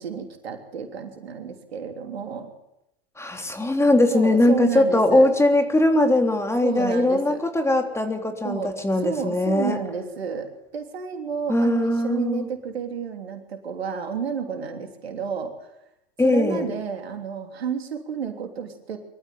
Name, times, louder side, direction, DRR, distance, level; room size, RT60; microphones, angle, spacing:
voice 1, 0.0-2.5 4.1-5.3 6.6-7.4 8.4-8.7 9.0-15.5 16.2-19.0, right 6 dB, 80° right, 5 dB, 3.2 m, -31 dB
voice 2, 3.2-9.8 11.5-12.5 16.2-16.7, left 1 dB, 10° left, 4 dB, 3.3 m, -20 dB
24.0 x 13.5 x 9.4 m, 0.86 s
hypercardioid pair, 85°, 30 cm